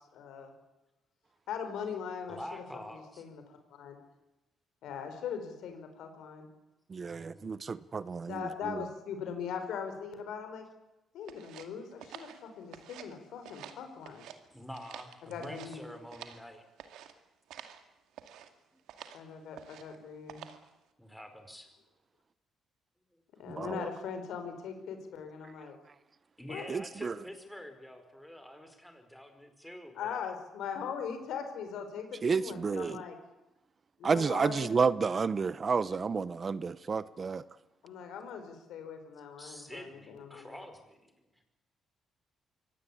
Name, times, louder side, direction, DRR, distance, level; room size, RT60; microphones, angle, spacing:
voice 1, 0.1-0.5 1.5-2.4 3.2-3.9 4.8-6.5 8.2-10.6 11.1-14.3 15.2-15.8 19.1-20.4 23.4-25.8 26.5-26.7 29.9-33.1 34.0-34.7 37.8-40.6, left 7 dB, 80° left, 7 dB, 4.8 m, -40 dB
voice 2, 2.3-3.2 7.0-7.8 14.5-16.6 21.0-21.7 26.4-30.3 32.6-33.0 39.4-41.1, equal, 5° left, 6 dB, 5.0 m, -47 dB
voice 3, 6.9-8.8 23.5-23.9 26.7-27.1 32.2-33.0 34.0-37.4, right 5 dB, 40° right, 17 dB, 0.8 m, -31 dB
sound 1, 11.3-13.2 13.4-14.4 14.7-16.5 16.8-17.1 17.5-17.8 18.1-18.5 18.9-19.2 19.5-20.0 20.3-20.7, right 9 dB, 85° right, 2.2 m, -49 dB
24.0 x 17.5 x 8.6 m, 1.0 s
cardioid pair, 90°, 0 cm